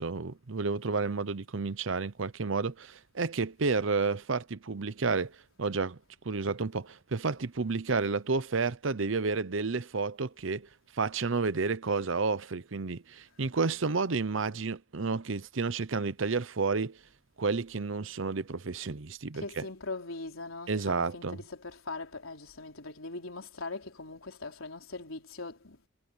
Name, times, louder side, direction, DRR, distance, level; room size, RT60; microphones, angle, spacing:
voice 1, 0.0-6.0 6.2-17.0 17.4-19.4 20.7-21.4, right 4 dB, 70° right, 0.8 m, -31 dB
voice 2, 19.3-25.9, left 3 dB, 85° left, 3.9 m, -41 dB
head